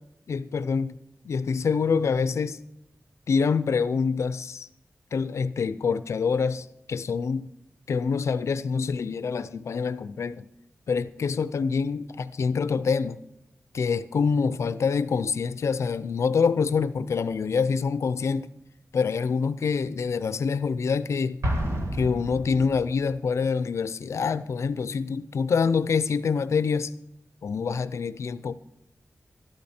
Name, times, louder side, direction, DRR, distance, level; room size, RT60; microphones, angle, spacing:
voice 1, 0.3-0.9 1.2-2.6 3.3-4.7 5.1-7.5 7.9-10.5 10.9-13.2 13.7-18.5 18.9-21.4 21.9-26.9 27.4-28.5, left 5 dB, 75° left, 15 dB, 0.5 m, -26 dB
Explosion, 21.4-23.2, equal, 70° right, 1.9 m, -30 dB
13.0 x 12.0 x 4.3 m, 0.82 s
wide cardioid pair, 155°, 5 cm